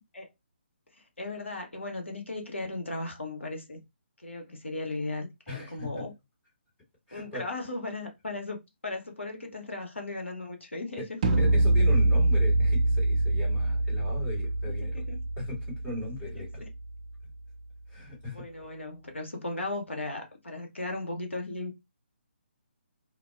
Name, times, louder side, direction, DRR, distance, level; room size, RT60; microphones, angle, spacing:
voice 1, 0.9-3.8 4.2-6.1 7.1-8.6 8.8-11.2 14.7-15.2 16.4-16.7 18.3-21.7, left 2 dB, 75° left, 0.8 m, -36 dB
voice 2, 5.5-5.9 7.1-7.4 11.0-11.1 11.4-15.0 15.4-16.6 17.9-18.4, left 2 dB, 15° left, 1.5 m, -38 dB
sound 1, 11.2-17.2, right 2 dB, 35° right, 0.4 m, -25 dB
2.4 x 2.2 x 2.3 m
figure-of-eight pair, 140°, 7 cm